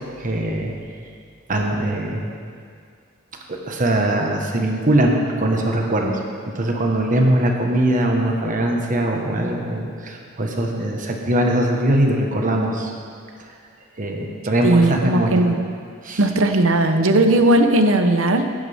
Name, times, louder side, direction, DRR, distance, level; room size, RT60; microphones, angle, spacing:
voice 1, 0.2-0.7 1.5-2.2 3.5-6.2 6.5-12.9 14.0-15.5 16.0-16.2, right 1 dB, 40° right, 1 dB, 1.4 m, -21 dB
voice 2, 14.6-15.6 16.2-18.5, right 1 dB, 75° right, 7 dB, 0.9 m, -17 dB
16.5 x 10.5 x 3.6 m, 2.2 s
head